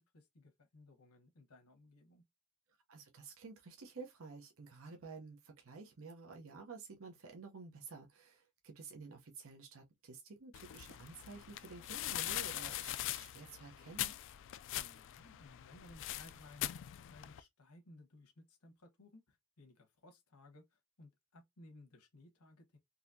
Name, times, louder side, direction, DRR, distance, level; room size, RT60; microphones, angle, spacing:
voice 1, 0.0-2.2 14.7-16.7 17.0-22.8, left 2 dB, 90° left, 1.1 m, -60 dB
voice 2, 2.9-14.2, right 4 dB, 65° right, 0.8 m, -52 dB
sound 1, 10.5-17.4, left 14 dB, 60° left, 0.3 m, -42 dB
4.0 x 2.8 x 2.6 m
head